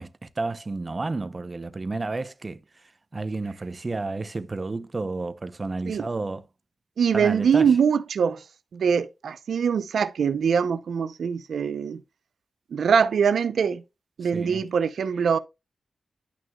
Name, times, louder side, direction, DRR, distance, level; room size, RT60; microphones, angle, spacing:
voice 1, 0.0-6.5 7.1-7.8 14.2-14.7, right 3 dB, 35° right, 0.7 m, -31 dB
voice 2, 7.0-8.4 8.7-12.0 12.7-13.8 14.2-15.4, right 6 dB, 80° right, 0.6 m, -23 dB
11.0 x 6.0 x 2.3 m
cardioid pair, 80°, 0 cm